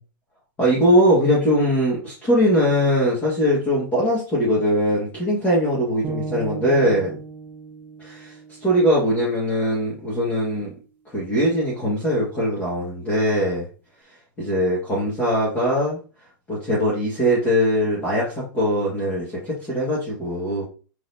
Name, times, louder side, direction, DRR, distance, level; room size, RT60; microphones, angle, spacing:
voice 1, 0.6-7.1 8.0-8.3 8.6-10.7 11.1-13.7 14.4-16.0 16.5-20.6, equal, 15° left, -7 dB, 1.5 m, -21 dB
sound 1, 6.0-10.2, right 4 dB, 20° right, 0.4 m, -37 dB
4.9 x 4.0 x 2.7 m, 0.36 s
supercardioid pair, 165°, 10 cm